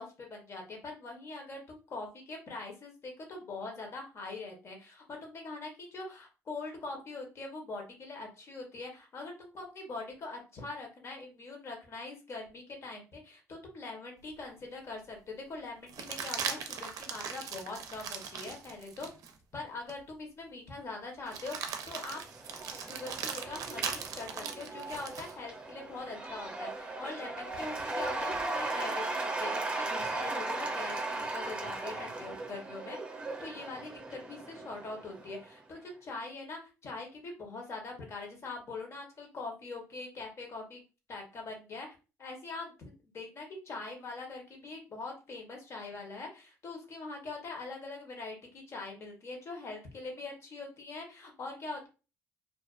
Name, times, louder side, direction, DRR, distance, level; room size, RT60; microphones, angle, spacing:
voice 1, 0.0-19.1 19.5-22.2 22.5-31.0 31.3-33.0 33.4-40.8 41.1-41.9 42.2-42.8 43.1-51.9, left 3 dB, 50° left, 1 dB, 0.9 m, -43 dB
sound 1, 14.3-14.4 15.9-19.3 19.9-20.0 21.3-25.4 27.5-28.4, right 6 dB, 70° right, 0.4 m, -39 dB
Cheering / Applause / Crowd, 22.0-35.5, right 2 dB, 20° right, 0.7 m, -37 dB
2.4 x 2.2 x 2.4 m, 0.32 s
cardioid pair, 95°, 6 cm